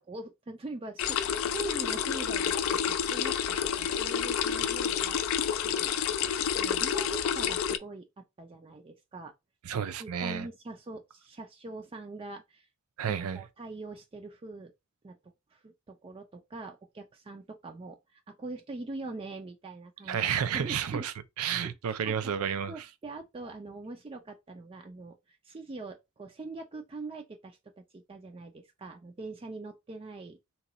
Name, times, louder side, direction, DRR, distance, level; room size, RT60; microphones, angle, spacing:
voice 1, 0.0-5.2 5.6-5.9 6.6-9.3 9.7-12.7 13.3-14.7 15.0-15.2 15.5-20.2 20.5-21.0 21.4-30.4, right 2 dB, 25° right, 0.4 m, -43 dB
sound 1, 1.0-7.8, left 8 dB, 65° left, 0.3 m, -29 dB
voice 2, 9.6-10.5 13.0-13.4 20.1-22.9, right 8 dB, 85° right, 0.4 m, -31 dB
2.9 x 2.3 x 3.9 m
head